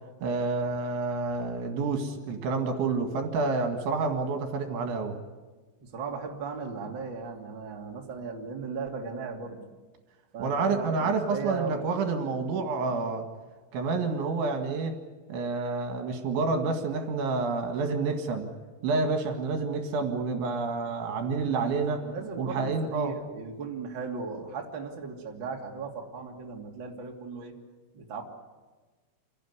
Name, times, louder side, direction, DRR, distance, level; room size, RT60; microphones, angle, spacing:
voice 1, 0.2-5.1 10.4-13.3 13.7-15.0 15.3-18.5 18.8-22.0 22.4-23.1, right 4 dB, 70° right, 5 dB, 4.1 m, -29 dB
voice 2, 5.8-9.6 10.3-11.8 22.0-27.5 27.9-28.2, right 5 dB, 30° right, 0 dB, 2.6 m, -37 dB
28.0 x 17.0 x 9.7 m, 1.3 s
omnidirectional pair, 5.7 m